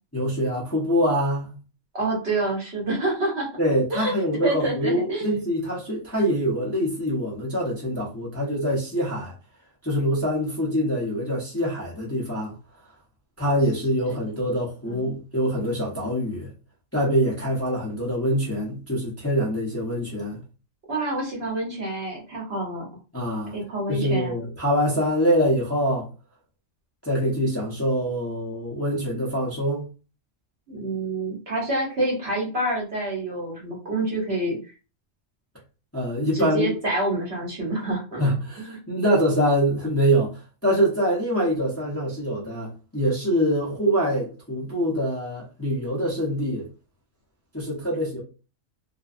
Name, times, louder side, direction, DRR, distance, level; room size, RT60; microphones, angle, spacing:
voice 1, 0.1-1.6 3.6-9.3 9.8-12.5 13.4-16.5 16.9-20.4 23.1-23.5 23.9-26.1 27.0-29.8 35.9-36.7 38.2-46.7 47.5-48.2, equal, 15° left, 0.6 m, -24 dB
voice 2, 1.9-3.5 3.9-4.1 4.4-5.3 14.8-15.1 20.9-22.9 23.5-24.4 30.7-34.6 36.3-38.2, right 2 dB, 55° right, 1.1 m, -27 dB
2.6 x 2.2 x 2.4 m
omnidirectional pair, 1.3 m